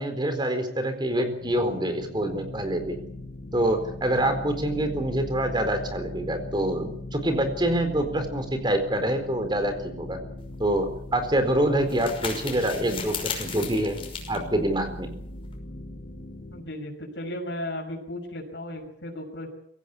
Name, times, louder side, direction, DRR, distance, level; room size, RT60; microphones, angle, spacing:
voice 1, 0.0-3.0 3.5-10.2 10.6-10.9 11.1-14.0 14.3-15.1, right 1 dB, 25° right, 7 dB, 4.2 m, -26 dB
sound 1, 1.4-16.6, left 1 dB, 55° left, 5.8 m, -40 dB
sound 2, 10.4-15.6, left 6 dB, 30° left, 5.9 m, -37 dB
voice 2, 16.5-19.5, left 1 dB, 80° left, 1 dB, 6.2 m, -35 dB
23.5 x 17.0 x 8.6 m, 0.70 s
head